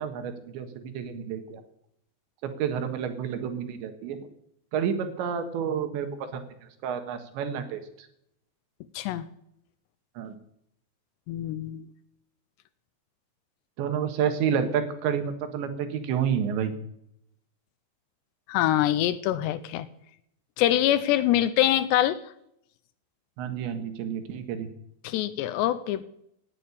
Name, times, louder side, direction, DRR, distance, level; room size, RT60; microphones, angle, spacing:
voice 1, 0.0-1.6 2.4-4.2 4.7-6.4 6.8-7.8 10.2-10.4 13.8-16.7 23.4-24.7, right 8 dB, 80° right, 7 dB, 3.8 m, -29 dB
voice 2, 8.9-9.3 11.3-11.9 18.5-19.9 20.6-22.2 25.0-26.0, left 13 dB, 80° left, 14 dB, 2.7 m, -24 dB
18.5 x 8.9 x 7.1 m, 0.76 s
omnidirectional pair, 5.3 m